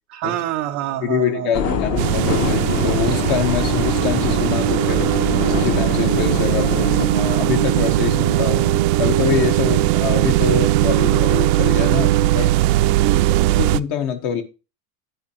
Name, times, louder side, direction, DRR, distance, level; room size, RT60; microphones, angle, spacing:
voice 1, 0.1-1.8 13.0-13.6, right 12 dB, 30° right, 3 dB, 0.4 m, -27 dB
voice 2, 1.0-5.1 5.5-8.6 9.0-12.5 13.6-14.4, left 8 dB, 50° left, 6 dB, 1.3 m, -24 dB
Piano, 1.3-12.8, left 12 dB, 75° left, 1.2 m, -36 dB
sound 1, 1.5-7.1, left 7 dB, 30° left, 0.8 m, -25 dB
sound 2, 2.0-13.8, right 16 dB, 75° right, 0.6 m, -19 dB
9.7 x 8.2 x 3.0 m, 0.30 s
supercardioid pair, 155°, 50 cm